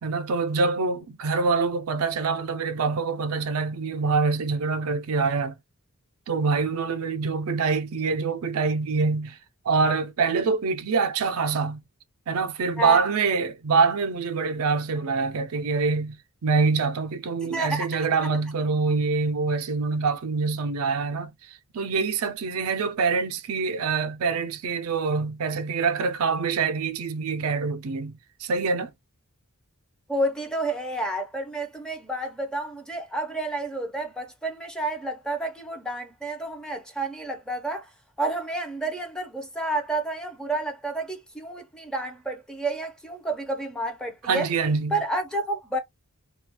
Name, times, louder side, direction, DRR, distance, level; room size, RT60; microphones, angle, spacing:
voice 1, 0.0-5.5 6.3-9.4 9.7-11.8 12.3-28.9 44.2-45.0, right 4 dB, 70° right, 0.4 m, -25 dB
voice 2, 17.4-18.1 30.1-37.9 38.2-44.5 44.9-45.8, right 2 dB, 5° left, 0.5 m, -30 dB
2.3 x 2.2 x 2.8 m
head